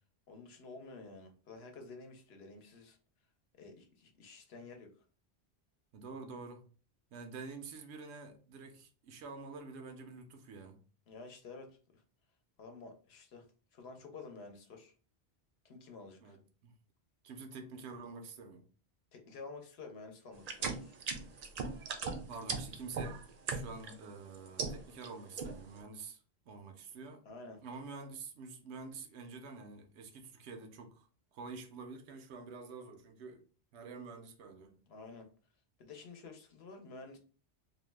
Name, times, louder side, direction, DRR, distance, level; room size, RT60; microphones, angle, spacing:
voice 1, 0.3-3.0 3.6-5.1 11.1-12.0 12.6-13.5 13.7-14.9 15.6-16.4 19.1-20.9 27.2-27.6 34.9-35.3 35.8-37.2, left 3 dB, 70° left, 0.9 m, -50 dB
voice 2, 5.9-6.6 7.1-10.8 16.2-16.7 17.2-18.7 22.3-23.2 23.5-27.2 27.6-33.4 33.7-34.8, right 4 dB, 85° right, 0.9 m, -48 dB
sound 1, 20.4-23.9 24.3-25.1 25.4-25.8, right 4 dB, 55° right, 0.4 m, -38 dB
2.6 x 2.1 x 3.1 m
omnidirectional pair, 1.1 m